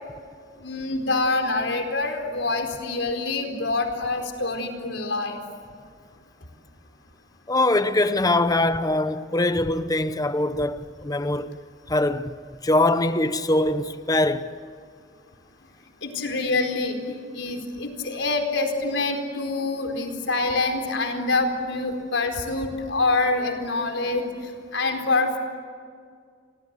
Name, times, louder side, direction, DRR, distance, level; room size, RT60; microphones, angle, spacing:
voice 1, 0.6-5.4 16.0-24.3 24.7-25.4, left 3 dB, 85° left, 4.4 m, -26 dB
voice 2, 7.5-11.6 11.9-12.3 12.6-14.5, left 2 dB, 20° left, 0.9 m, -22 dB
29.5 x 24.0 x 8.3 m
head